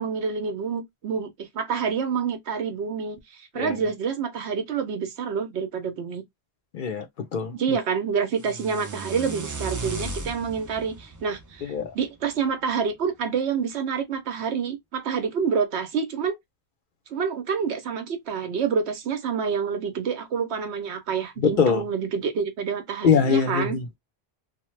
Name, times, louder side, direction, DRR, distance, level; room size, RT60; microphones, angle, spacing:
voice 1, 0.0-6.2 7.5-16.3 17.1-23.8, right 6 dB, 80° right, 0.9 m, -28 dB
voice 2, 6.7-7.1 7.3-7.8 11.6-11.9 21.4-21.8 23.0-24.0, left 6 dB, 60° left, 0.7 m, -23 dB
sound 1, 8.3-12.5, right 2 dB, 30° right, 0.3 m, -36 dB
2.8 x 2.1 x 3.1 m
omnidirectional pair, 1.1 m